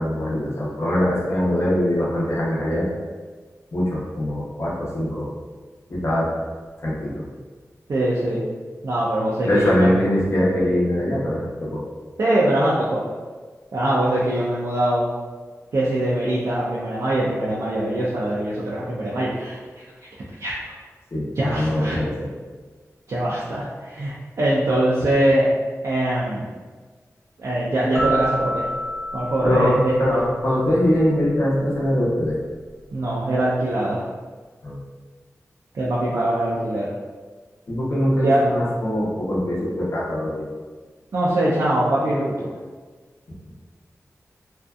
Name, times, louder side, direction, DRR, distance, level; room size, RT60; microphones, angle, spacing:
voice 1, 0.0-2.9 3.7-5.3 5.9-6.3 6.8-7.2 9.4-11.8 21.1-22.3 29.4-32.3 34.6-34.8 37.7-40.5, equal, 55° left, -6 dB, 0.8 m, -22 dB
voice 2, 7.9-8.4 8.8-9.9 12.2-13.0 13.7-15.1 15.7-19.6 20.4-20.7 21.4-22.0 23.1-25.5 25.8-26.5 27.4-28.7 29.1-29.9 32.9-34.1 35.7-36.9 38.2-38.4 41.1-42.5, right 1 dB, 65° right, -7 dB, 0.4 m, -22 dB
sound 1, 28.0-30.7, right 1 dB, ahead, 0.6 m, -29 dB
2.6 x 2.3 x 2.3 m, 1.4 s
wide cardioid pair, 65°, 6 cm